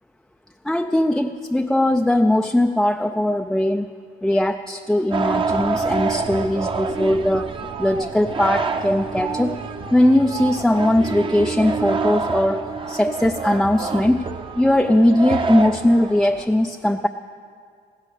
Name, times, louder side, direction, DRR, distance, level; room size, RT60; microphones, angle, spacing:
voice 1, 0.6-3.9 4.2-7.5 7.8-9.5 9.9-14.3 14.6-17.1, left 1 dB, 5° left, 6 dB, 0.4 m, -19 dB
sound 1, 5.1-16.5, right 4 dB, 30° right, 0.8 m, -27 dB
15.5 x 11.0 x 6.8 m, 2.2 s
cardioid pair, 110°, 17 cm